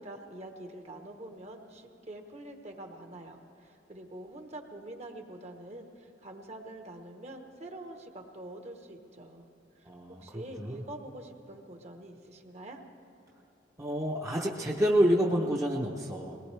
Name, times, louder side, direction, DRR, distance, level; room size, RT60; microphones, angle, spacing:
voice 1, 0.0-9.5 9.8-9.9 10.2-12.8, right 1 dB, 35° right, 4 dB, 1.1 m, -45 dB
voice 2, 9.9-10.8 13.8-16.4, equal, 15° right, -3 dB, 0.8 m, -28 dB
21.5 x 19.0 x 3.3 m, 2.9 s
head